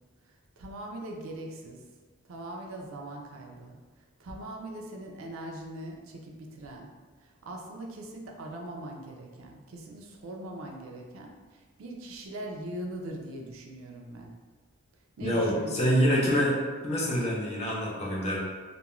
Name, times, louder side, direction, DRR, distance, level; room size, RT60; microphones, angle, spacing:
voice 1, 0.6-1.8 2.3-3.8 4.2-6.9 7.2-14.3 15.2-15.8, right 1 dB, 75° right, 0 dB, 0.4 m, -41 dB
voice 2, 15.2-16.5 16.8-18.4, equal, 30° left, -4 dB, 0.5 m, -26 dB
2.3 x 2.1 x 2.9 m, 1.4 s
head